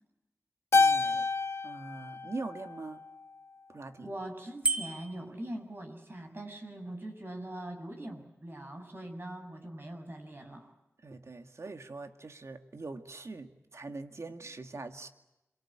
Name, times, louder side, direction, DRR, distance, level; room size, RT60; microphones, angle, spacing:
Keyboard (musical), 0.7-3.2, left 4 dB, 60° left, 1.2 m, -28 dB
voice 1, 0.8-1.3 1.6-3.0 3.7-4.1 11.0-15.1, right 3 dB, 70° right, 7 dB, 2.1 m, -43 dB
voice 2, 4.0-10.7, right 1 dB, 45° right, 4 dB, 7.3 m, -42 dB
Bicycle bell, 4.6-5.3, right 3 dB, 20° right, 2.3 m, -31 dB
27.0 x 23.5 x 8.9 m, 0.93 s
cardioid pair, 45°, 5 cm